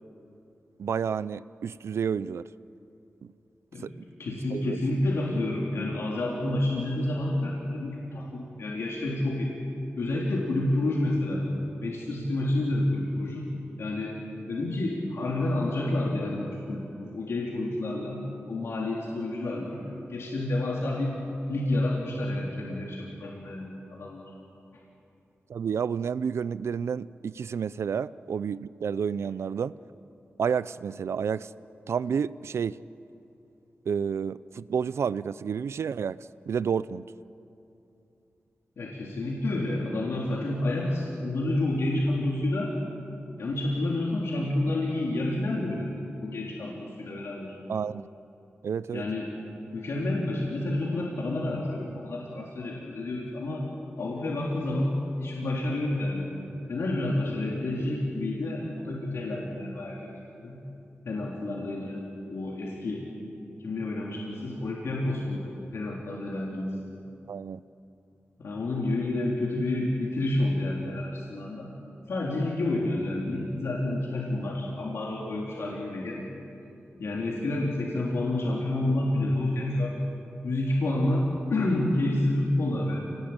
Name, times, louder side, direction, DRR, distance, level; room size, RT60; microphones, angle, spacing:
voice 1, 0.8-2.5 3.2-3.3 3.8-3.9 4.5-4.8 25.5-29.8 30.4-31.5 31.9-32.8 33.9-36.2 36.5-37.1 47.7-48.1 48.6-49.1 67.3-67.6, right 7 dB, 85° right, 17 dB, 0.5 m, -30 dB
voice 2, 4.2-9.5 10.0-11.4 11.8-13.5 13.8-14.2 14.5-18.2 18.5-19.8 20.1-21.2 21.5-24.2 38.8-42.7 43.4-47.6 48.9-49.3 49.7-53.6 54.0-54.9 55.2-56.3 56.7-60.6 61.1-62.0 62.3-63.1 63.6-66.7 68.4-71.7 72.1-76.2 77.0-80.0 80.4-83.0, left 1 dB, 80° left, -3 dB, 3.9 m, -29 dB
29.0 x 20.0 x 8.9 m, 2.8 s
wide cardioid pair, 175°, 4 cm